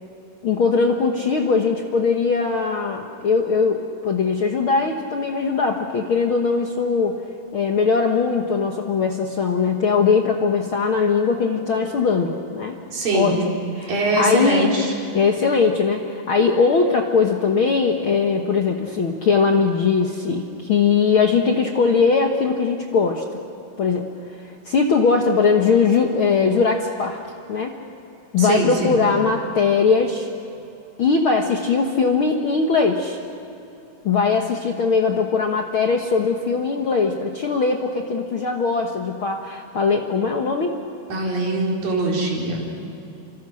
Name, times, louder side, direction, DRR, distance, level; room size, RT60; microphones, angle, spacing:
voice 1, 0.4-7.2 7.5-12.7 13.1-13.4 13.8-14.7 15.1-23.4 23.8-24.1 24.4-27.2 27.5-27.7 28.3-30.3 31.0-33.2 34.0-40.8, left 5 dB, 55° left, 3 dB, 1.5 m, -20 dB
voice 2, 12.9-13.4 13.9-14.9 28.4-29.0 41.1-42.6, right 2 dB, 80° right, -2 dB, 6.0 m, -22 dB
29.5 x 25.5 x 6.4 m, 2.7 s
omnidirectional pair, 3.9 m